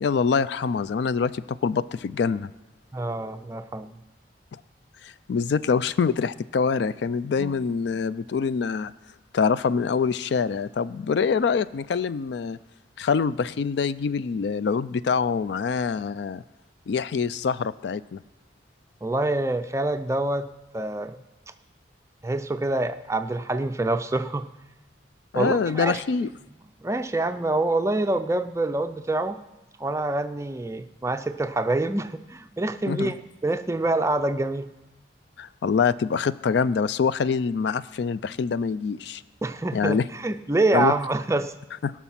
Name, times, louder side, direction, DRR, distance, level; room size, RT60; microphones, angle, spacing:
voice 1, 0.0-2.5 5.0-8.9 9.3-12.6 13.0-16.4 16.9-18.2 25.3-26.3 32.9-33.1 35.4-39.2 39.7-40.0 40.7-40.9 41.8-41.9, left 5 dB, 65° left, 16 dB, 0.3 m, -25 dB
voice 2, 2.9-3.9 7.4-7.6 19.0-20.5 20.7-21.2 22.2-24.5 25.3-26.0 26.8-29.4 29.8-33.1 33.4-34.7 39.4-41.5, right 2 dB, 15° right, 10 dB, 0.4 m, -26 dB
18.0 x 6.1 x 5.7 m, 1.0 s
head